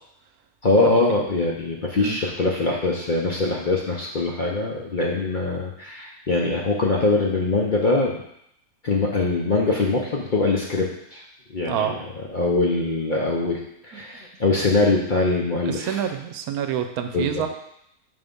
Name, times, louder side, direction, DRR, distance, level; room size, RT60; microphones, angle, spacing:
voice 1, 0.6-8.2 8.8-11.2 11.5-12.0 12.3-16.0 17.1-17.4, left 3 dB, 45° left, -2 dB, 0.7 m, -23 dB
voice 2, 15.6-17.5, right 9 dB, 80° right, 7 dB, 1.1 m, -27 dB
5.5 x 3.5 x 5.3 m, 0.75 s
omnidirectional pair, 1.6 m